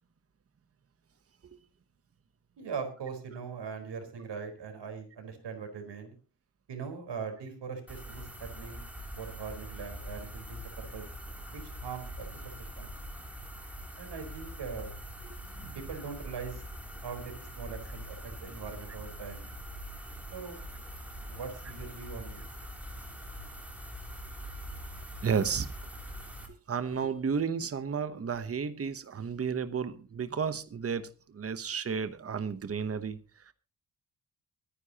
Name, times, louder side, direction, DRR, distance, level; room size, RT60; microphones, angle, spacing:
voice 1, 2.6-6.2 6.7-8.8 9.2-11.1 11.5-12.3 12.6-12.9 14.0-14.9 15.7-16.6 17.0-19.5 20.3-20.6 21.3-22.4, right 6 dB, 80° right, 4.4 m, -41 dB
sound 1, 7.9-26.5, equal, 5° right, 3.1 m, -43 dB
voice 2, 25.2-25.7 26.5-33.2 33.5-33.6, right 6 dB, 35° right, 1.0 m, -32 dB
24.0 x 10.0 x 2.9 m
wide cardioid pair, 150°, 41 cm